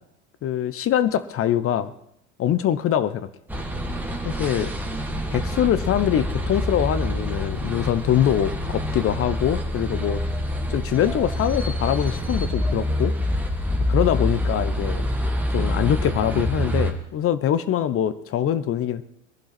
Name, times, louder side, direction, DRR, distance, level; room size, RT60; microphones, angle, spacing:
voice 1, 0.4-1.9 2.4-3.3 4.2-4.7 5.3-10.2 10.7-13.1 13.9-15.0 15.5-19.0, left 10 dB, 40° left, 14 dB, 1.0 m, -23 dB
sound 1, 3.5-16.9, left 1 dB, 5° right, 2.3 m, -26 dB
22.0 x 11.5 x 4.3 m, 0.78 s
hypercardioid pair, 75°, 35 cm